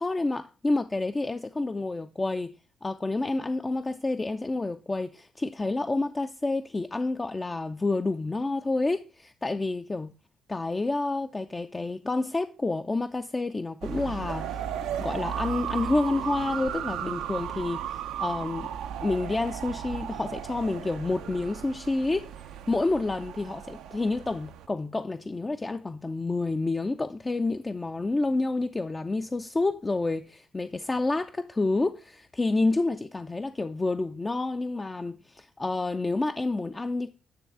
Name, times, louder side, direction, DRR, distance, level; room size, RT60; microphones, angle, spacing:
voice 1, 0.0-2.5 2.8-10.1 10.5-14.6 15.0-18.7 19.0-22.3 22.7-37.1, left 2 dB, 25° left, 0.4 m, -29 dB
sound 1, 13.8-24.7, right 9 dB, 80° right, 0.5 m, -35 dB
9.4 x 3.2 x 6.0 m
supercardioid pair, 65°, 0 cm